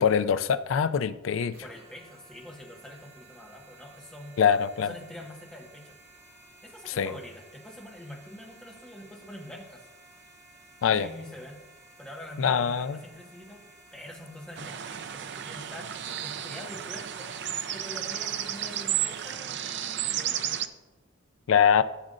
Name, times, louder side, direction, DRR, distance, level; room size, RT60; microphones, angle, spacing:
voice 1, 0.0-1.6 4.4-4.9 6.9-7.1 10.8-11.1 12.4-13.0 21.5-21.8, left 7 dB, 75° left, 14 dB, 0.4 m, -23 dB
sound 1, 1.5-19.3, right 2 dB, 30° right, 1.7 m, -55 dB
voice 2, 1.6-4.4 4.8-5.9 6.6-9.9 10.9-11.6 12.0-13.6 13.9-17.4 17.7-20.7, left 1 dB, 5° left, -2 dB, 1.5 m, -45 dB
sound 2, 14.6-20.7, right 10 dB, 60° right, 0.5 m, -33 dB
13.0 x 7.4 x 2.6 m, 1.1 s
head